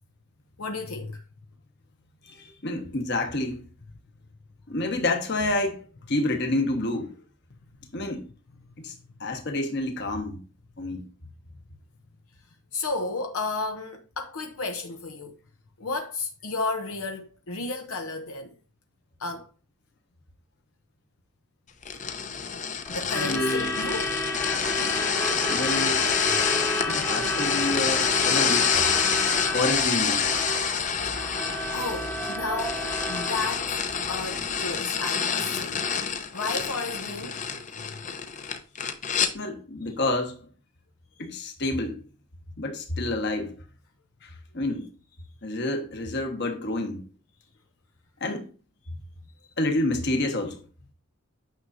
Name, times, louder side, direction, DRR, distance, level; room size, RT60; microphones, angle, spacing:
voice 1, 0.6-1.2 12.7-15.3 15.8-18.5 19.2-19.5 22.9-24.1 31.7-33.7 34.1-35.8 36.3-37.4 37.9-38.0, left 3 dB, 80° left, 0.8 m, -32 dB
voice 2, 2.2-3.6 4.7-7.2 7.9-8.2 8.8-8.9 9.2-10.4 10.8-11.0 23.1-23.7 24.8-24.9 25.5-26.0 26.9-28.7 29.5-30.3 39.3-40.5 41.2-42.0 42.6-43.5 44.2-44.9 45.4-47.0 48.2-48.5 49.6-50.6, left 2 dB, 50° left, 1.3 m, -28 dB
sound 1, 21.8-39.3, left 6 dB, 35° left, 0.7 m, -27 dB
Truck / Alarm, 22.9-34.8, left 1 dB, 10° left, 1.0 m, -31 dB
9.3 x 6.1 x 2.6 m
head